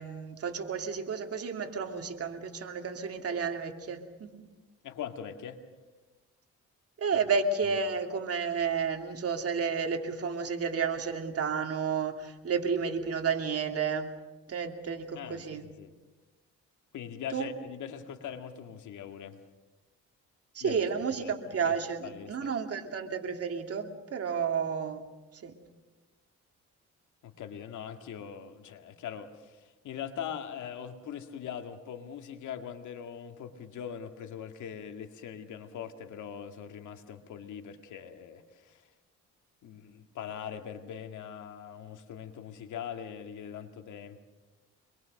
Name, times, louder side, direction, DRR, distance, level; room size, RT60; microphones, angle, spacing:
voice 1, 0.0-4.5 7.0-14.2 14.5-15.6 17.3-17.5 20.5-25.1 25.3-25.6, right 5 dB, 50° right, 4 dB, 2.8 m, -31 dB
voice 2, 4.8-5.6 15.2-15.9 16.9-19.4 20.6-20.8 21.2-21.3 21.6-21.7 22.0-22.5 27.2-38.8 39.6-44.2, left 8 dB, 75° left, 6 dB, 2.1 m, -41 dB
26.0 x 22.5 x 6.6 m, 1.2 s
cardioid pair, 90°, 30 cm